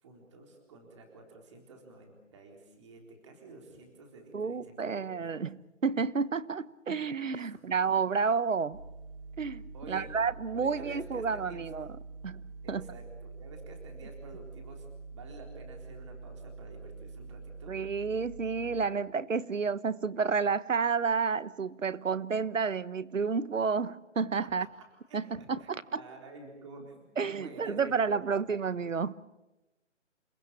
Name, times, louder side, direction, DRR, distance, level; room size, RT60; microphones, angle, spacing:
voice 1, 0.0-5.4 7.4-7.7 9.7-10.1 10.5-11.6 12.6-14.9 15.1-17.7 24.6-24.7 25.1-28.6, right 3 dB, 25° right, 4.0 m, -50 dB
voice 2, 4.3-5.6 5.8-8.8 9.4-11.9 12.2-12.4 12.7-12.9 17.7-24.7 25.1-26.0 27.2-29.1, right 5 dB, 85° right, 1.3 m, -30 dB
sound 1, 8.7-18.9, right 4 dB, 45° right, 2.9 m, -46 dB
29.0 x 16.0 x 8.9 m
hypercardioid pair, 170°, 38 cm